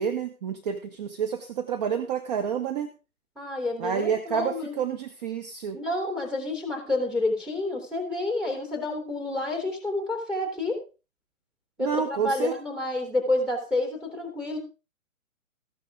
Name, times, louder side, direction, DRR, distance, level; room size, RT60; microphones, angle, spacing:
voice 1, 0.0-2.9 3.8-5.8 11.8-12.5, right 7 dB, 30° right, 7 dB, 1.2 m, -29 dB
voice 2, 3.3-4.7 5.7-10.8 11.8-14.6, left 2 dB, ahead, 2 dB, 3.4 m, -29 dB
15.0 x 11.0 x 3.6 m, 0.31 s
figure-of-eight pair, 140°, 42 cm